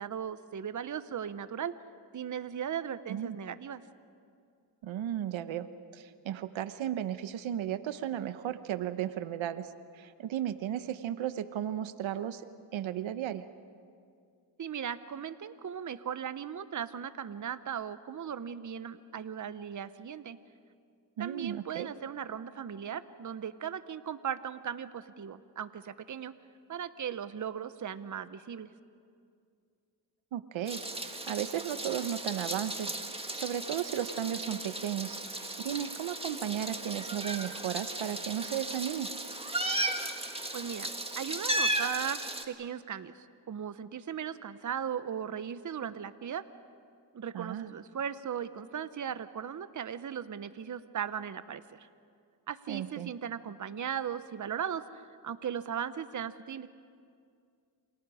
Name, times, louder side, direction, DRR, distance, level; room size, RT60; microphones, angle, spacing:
voice 1, 0.0-1.7 2.1-3.8 14.6-20.4 21.2-26.3 26.7-28.7 40.5-40.9 41.2-42.2 42.5-46.4 47.1-51.9 52.5-54.8 55.2-56.7, right 8 dB, 40° right, 13 dB, 0.9 m, -37 dB
voice 2, 4.8-5.7 5.9-9.7 9.9-13.4 21.2-21.9 30.3-39.1 47.3-47.7 52.7-53.1, right 10 dB, 80° right, 12 dB, 1.0 m, -35 dB
Meow, 30.7-42.5, right 1 dB, 10° right, 1.9 m, -36 dB
29.0 x 27.5 x 5.0 m, 2.3 s
cardioid pair, 80°, 46 cm